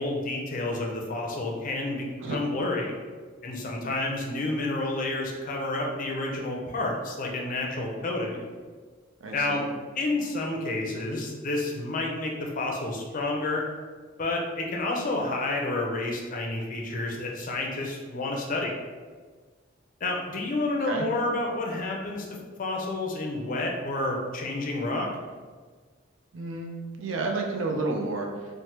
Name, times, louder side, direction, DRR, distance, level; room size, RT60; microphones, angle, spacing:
voice 1, 0.0-3.0 3.4-8.5 9.3-9.6 9.9-13.6 14.2-18.7 20.0-22.3 22.6-25.1, left 2 dB, 45° left, 0 dB, 0.5 m, -30 dB
voice 2, 9.2-9.6 20.8-21.1 26.3-28.6, right 3 dB, 90° right, 1 dB, 0.5 m, -31 dB
3.2 x 2.1 x 2.8 m, 1.5 s
head